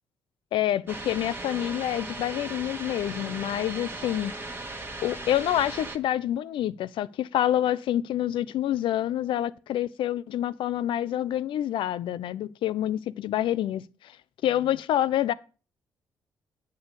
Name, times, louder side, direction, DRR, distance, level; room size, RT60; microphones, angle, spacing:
voice 1, 0.5-4.3 5.0-13.9 14.4-15.3, left 12 dB, 65° left, 0.5 m, -27 dB
sound 1, 0.9-6.0, right 2 dB, 25° right, 1.3 m, -37 dB
8.6 x 4.5 x 6.9 m
hypercardioid pair, 45°, 9 cm